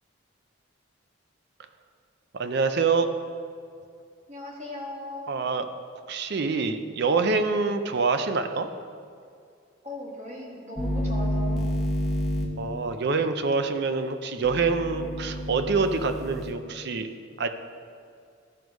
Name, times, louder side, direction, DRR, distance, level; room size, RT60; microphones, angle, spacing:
voice 1, 2.3-3.1 5.3-5.7 6.1-8.7 12.6-17.1 17.4-17.5, right 4 dB, 55° right, 8 dB, 0.5 m, -26 dB
voice 2, 4.3-5.3 9.8-11.8, left 1 dB, 35° right, -3 dB, 1.6 m, -38 dB
sound 1, 10.7-12.4 14.4-16.5, equal, ahead, 0.9 m, -29 dB
13.0 x 4.7 x 5.2 m, 2.3 s
head